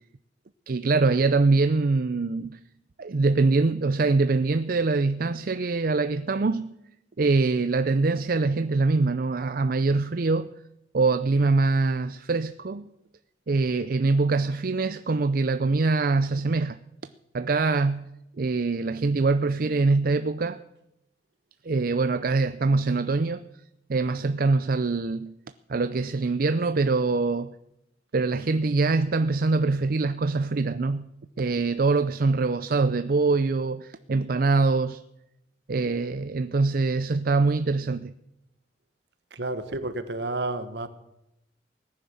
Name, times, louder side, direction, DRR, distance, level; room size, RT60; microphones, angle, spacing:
voice 1, 0.7-2.6 3.0-6.7 7.2-10.5 10.9-12.9 13.5-16.8 17.3-18.0 18.4-20.6 21.6-23.5 23.9-25.3 25.7-27.5 28.1-31.1 31.4-35.0 35.7-38.1, right 3 dB, 55° right, 0.5 m, -24 dB
voice 2, 39.3-40.9, right 2 dB, 70° right, 1.4 m, -31 dB
18.0 x 10.5 x 7.0 m
head